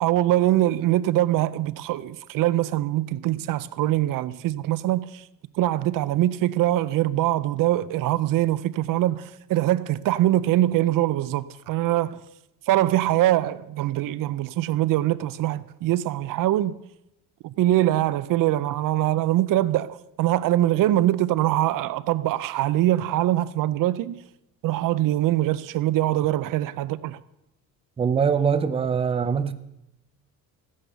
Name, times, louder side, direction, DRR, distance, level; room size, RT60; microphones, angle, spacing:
voice 1, 0.0-5.2 5.5-12.2 12.7-16.8 17.4-24.2 24.6-27.2, right 14 dB, 60° right, 0.6 m, -23 dB
voice 2, 28.0-29.5, right 6 dB, 15° right, 0.5 m, -22 dB
14.5 x 10.0 x 6.8 m
cardioid pair, 160°, 37 cm